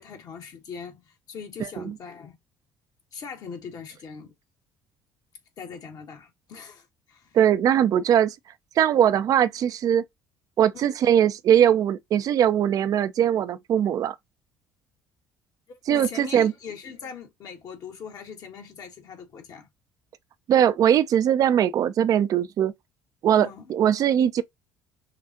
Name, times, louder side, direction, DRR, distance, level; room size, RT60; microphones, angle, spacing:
voice 1, 0.0-2.4 3.1-4.3 5.6-7.4 10.7-10.9 15.7-19.7 23.4-23.7, left 6 dB, 55° left, 1.5 m, -40 dB
voice 2, 7.3-8.3 8.8-10.0 10.6-14.1 15.9-16.5 20.5-22.7 23.2-24.4, right 10 dB, 50° right, 0.5 m, -21 dB
5.8 x 2.5 x 2.6 m
hypercardioid pair, 55°, 8 cm